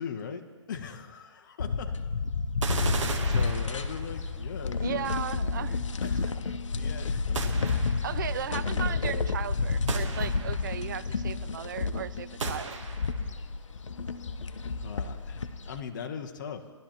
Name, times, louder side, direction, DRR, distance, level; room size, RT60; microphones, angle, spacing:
voice 1, 0.0-2.0 2.9-5.1 6.0-7.9 14.7-16.7, left 6 dB, 40° left, 6 dB, 0.9 m, -40 dB
sound 1, 1.6-15.8, left 4 dB, 85° left, 0.8 m, -30 dB
sound 2, 2.6-4.2 7.3-8.2 9.9-10.8 12.4-13.3, right 4 dB, 80° right, 1.5 m, -35 dB
voice 2, 4.8-6.1 7.9-12.8 14.3-14.4, right 9 dB, 40° right, 16 dB, 0.4 m, -36 dB
19.5 x 11.5 x 3.0 m, 1.5 s
hypercardioid pair, 160°, 16 cm